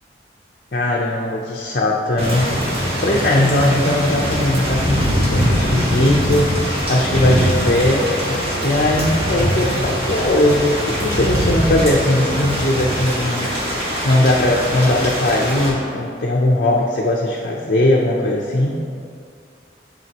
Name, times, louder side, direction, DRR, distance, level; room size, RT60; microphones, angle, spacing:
voice 1, 0.7-2.5 3.0-5.0 5.3-6.5 6.9-8.1 8.6-13.5 14.0-18.8, left 1 dB, 50° left, -3 dB, 0.6 m, -19 dB
Thunder / Rain, 2.2-15.7, equal, 35° right, 1.6 m, -21 dB
11.5 x 4.2 x 2.9 m, 2.3 s
head